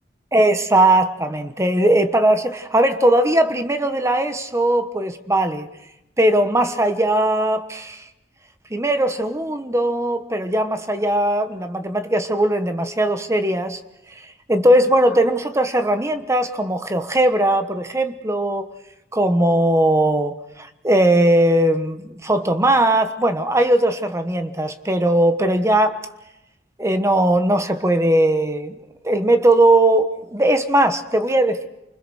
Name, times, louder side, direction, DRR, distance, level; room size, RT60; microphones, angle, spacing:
voice 1, 0.3-5.7 6.2-8.0 8.7-13.8 14.5-18.7 19.1-26.0 26.8-28.7 29.0-31.7, right 1 dB, 15° right, 1.2 m, -19 dB
29.0 x 21.0 x 6.4 m
head